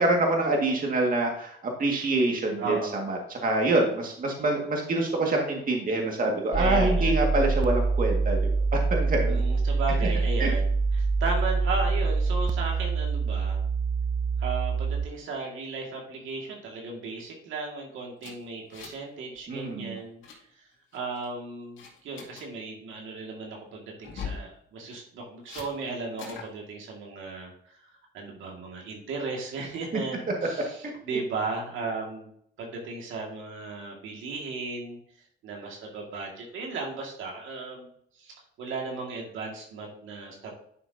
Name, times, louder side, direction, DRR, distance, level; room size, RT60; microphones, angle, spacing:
voice 1, 0.0-2.8 3.1-8.4 8.7-9.4 10.4-10.5 19.5-20.0 30.8-30.9, right 2 dB, 45° right, 1 dB, 2.0 m, -26 dB
voice 2, 2.6-3.0 6.6-7.2 9.3-13.7 14.4-20.2 20.5-20.7 20.9-32.3 32.6-35.0 35.4-40.6, right 3 dB, 80° right, -1 dB, 2.1 m, -35 dB
sound 1, 6.5-15.1, right 4 dB, 25° right, 0.5 m, -25 dB
sound 2, 18.2-19.1 19.4-19.6 19.9-20.4 20.9-21.3 21.8-22.5 24.0-24.5 25.5-25.7 26.2-26.5, left 6 dB, 75° left, 2.5 m, -40 dB
11.0 x 6.1 x 2.8 m, 0.66 s
cardioid pair, 90°, 20 cm